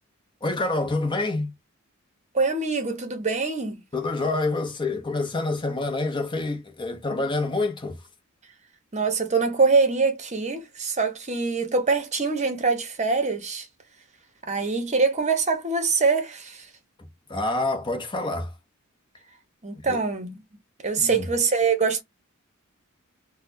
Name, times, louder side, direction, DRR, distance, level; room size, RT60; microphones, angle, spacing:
voice 1, 0.4-1.5 3.9-8.0 17.0-18.5 19.8-20.0 21.0-21.3, left 2 dB, 20° left, 0.7 m, -27 dB
voice 2, 2.3-3.8 8.9-13.7 14.4-16.7 19.6-20.4 20.8-22.0, right 4 dB, 35° right, 0.8 m, -24 dB
4.0 x 2.2 x 2.6 m
head